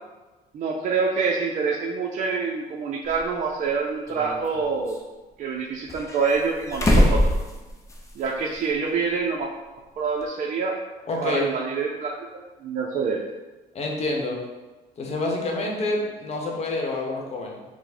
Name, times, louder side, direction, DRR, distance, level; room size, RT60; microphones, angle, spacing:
voice 1, 0.5-5.0 5.4-7.3 8.2-9.5 10.0-10.7 11.2-12.1 12.6-13.2, right 5 dB, 50° right, -1 dB, 0.5 m, -26 dB
sound 1, 3.1-3.2 4.1-5.0 5.9-8.2 8.5-8.6 10.2-10.3, left 1 dB, 20° left, 0.6 m, -23 dB
voice 2, 11.1-11.5 13.7-14.4 15.0-17.6, left 2 dB, 40° left, 0 dB, 0.9 m, -27 dB
4.6 x 2.1 x 4.2 m, 1.2 s
cardioid pair, 110°, 17 cm